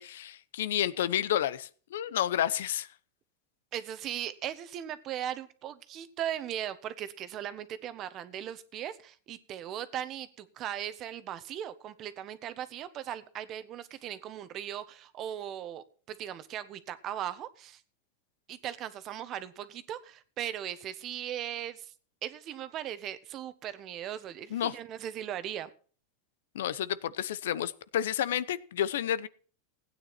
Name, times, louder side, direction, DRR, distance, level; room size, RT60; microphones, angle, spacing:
voice 1, 0.0-2.9 24.5-24.7 26.5-29.3, left 11 dB, 85° left, 0.9 m, -30 dB
voice 2, 3.7-17.8 18.5-21.9 22.2-25.7, right 11 dB, 40° right, 1.3 m, -38 dB
16.0 x 9.4 x 4.3 m
supercardioid pair, 130°, 0 cm